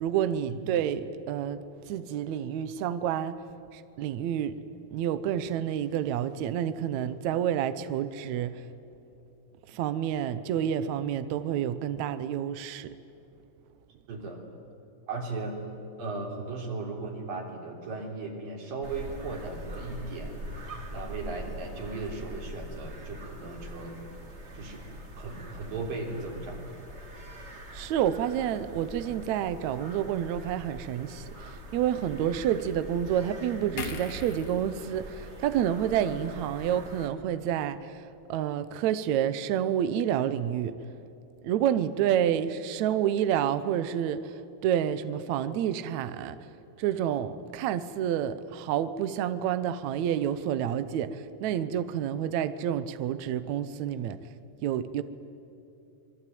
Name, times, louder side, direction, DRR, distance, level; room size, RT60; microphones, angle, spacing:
voice 1, 0.0-3.4 3.7-4.5 4.9-8.6 9.7-12.9 27.7-40.8 41.4-46.5 46.8-54.2 54.6-55.0, right 10 dB, 80° right, 13 dB, 1.6 m, -29 dB
voice 2, 14.1-14.4 15.1-15.6 16.0-20.4 20.9-24.0 24.5-24.8 25.2-26.6, right 3 dB, 60° right, 1 dB, 5.2 m, -37 dB
sound 1, 18.8-37.1, equal, 25° right, 1.8 m, -43 dB
sound 2, 33.8-37.1 37.5-37.7, left 3 dB, 85° left, 0.8 m, -42 dB
27.0 x 22.5 x 9.3 m, 2.8 s
omnidirectional pair, 4.5 m